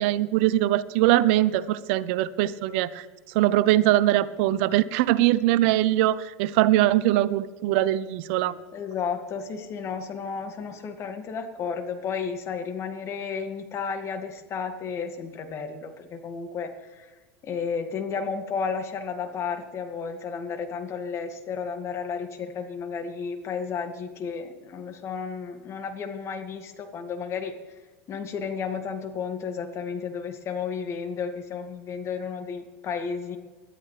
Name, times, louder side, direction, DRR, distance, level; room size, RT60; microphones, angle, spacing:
voice 1, 0.0-3.1 3.3-8.6, right 14 dB, 65° right, 16 dB, 0.7 m, -22 dB
voice 2, 8.7-17.1 17.4-27.5 28.1-33.4, left 6 dB, 40° left, 6 dB, 2.0 m, -32 dB
21.0 x 12.5 x 3.3 m, 1.3 s
hypercardioid pair, 95°, 7 cm